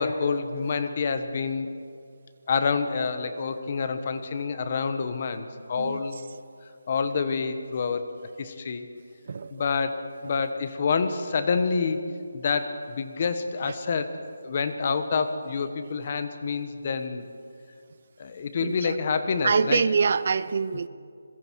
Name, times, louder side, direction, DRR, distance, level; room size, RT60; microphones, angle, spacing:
voice 1, 0.0-1.7 2.5-6.2 6.9-8.9 9.5-12.0 12.3-14.2 14.4-17.2 18.2-19.8, left 5 dB, 30° left, 1.1 m, -27 dB
voice 2, 9.2-9.6 18.6-19.0 19.4-20.9, right 5 dB, 35° right, 0.4 m, -25 dB
27.0 x 22.5 x 4.7 m
hypercardioid pair, 175°, 0 cm